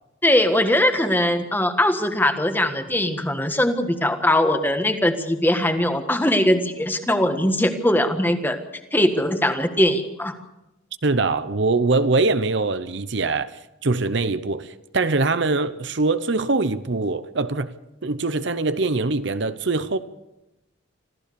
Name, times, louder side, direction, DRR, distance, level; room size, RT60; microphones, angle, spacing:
voice 1, 0.2-8.6 8.9-10.3, left 1 dB, 10° left, 1.5 m, -21 dB
voice 2, 11.0-17.7 18.0-20.0, right 3 dB, 55° right, 0.8 m, -23 dB
26.0 x 15.0 x 6.9 m
head